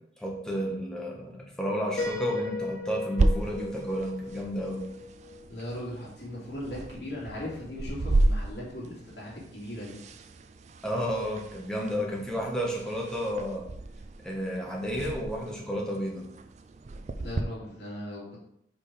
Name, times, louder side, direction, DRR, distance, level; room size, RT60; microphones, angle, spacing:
voice 1, 0.2-4.8 10.8-13.7 14.2-16.3, equal, 5° left, -2 dB, 1.2 m, -32 dB
Piano, 2.0-5.7, left 3 dB, 85° left, 1.1 m, -36 dB
sound 1, 3.2-17.4, right 2 dB, 40° right, 0.4 m, -33 dB
voice 2, 5.5-10.0 17.2-18.4, left 1 dB, 65° left, -5 dB, 2.6 m, -38 dB
5.0 x 4.6 x 5.2 m, 0.75 s
head